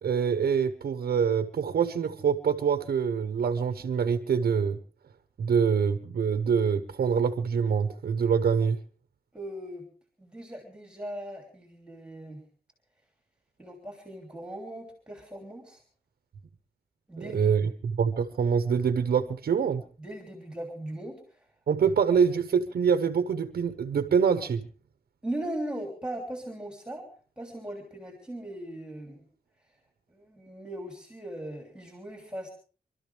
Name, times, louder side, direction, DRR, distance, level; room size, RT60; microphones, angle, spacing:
voice 1, 0.0-4.8 5.4-8.8 17.2-17.6 17.9-19.8 21.7-24.6, right 6 dB, 80° right, 10 dB, 1.0 m, -25 dB
voice 2, 9.3-9.9 10.2-12.4 13.6-15.8 17.1-17.5 20.0-21.5 25.2-27.1 27.4-29.3 30.1-32.5, right 1 dB, 5° right, 3 dB, 3.2 m, -39 dB
26.5 x 13.0 x 3.4 m, 0.40 s
wide cardioid pair, 130°, 16 cm